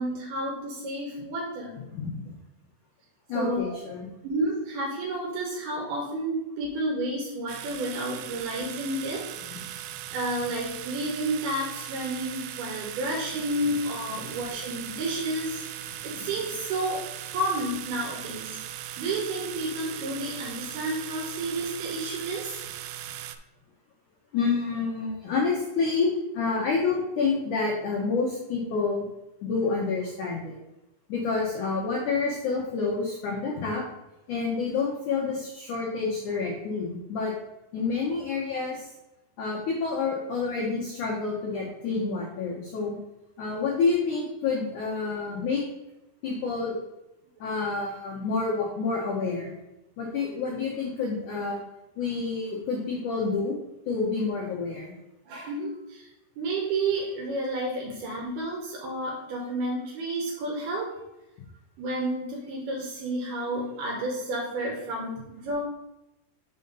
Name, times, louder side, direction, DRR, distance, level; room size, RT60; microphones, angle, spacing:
voice 1, 0.0-1.8 3.3-3.7 4.2-9.8 10.1-15.6 16.0-17.0 17.3-18.6 19.0-22.6 47.4-47.5 55.3-56.1 56.4-60.9 61.8-65.6, right 1 dB, 70° right, -1 dB, 2.7 m, -31 dB
voice 2, 1.9-2.2 3.3-4.1 9.5-9.6 14.2-14.3 14.9-15.0 24.3-29.0 29.4-30.6 31.1-33.8 34.3-37.3 37.7-38.9 39.4-43.0 43.4-45.6 46.2-46.8 47.4-49.5 50.0-51.6 52.0-53.5 53.9-54.9, left 4 dB, 80° left, -3 dB, 1.7 m, -28 dB
sound 1, 7.5-23.4, right 12 dB, 85° right, 2.8 m, -39 dB
6.5 x 5.4 x 3.9 m, 0.93 s
omnidirectional pair, 5.1 m